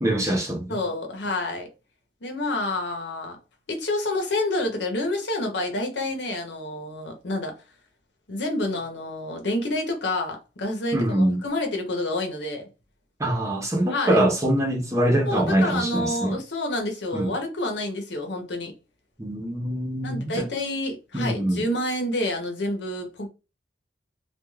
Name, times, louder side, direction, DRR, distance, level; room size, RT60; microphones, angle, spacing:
voice 1, 0.0-0.7 10.9-11.4 13.2-16.4 17.1-17.3 19.2-20.5 21.1-21.6, right 1 dB, 15° right, 0.6 m, -24 dB
voice 2, 0.7-1.7 2.2-3.4 3.7-7.5 8.3-12.7 13.9-14.2 15.3-18.7 20.0-23.3, left 1 dB, 70° left, 0.8 m, -28 dB
2.3 x 2.3 x 3.1 m
head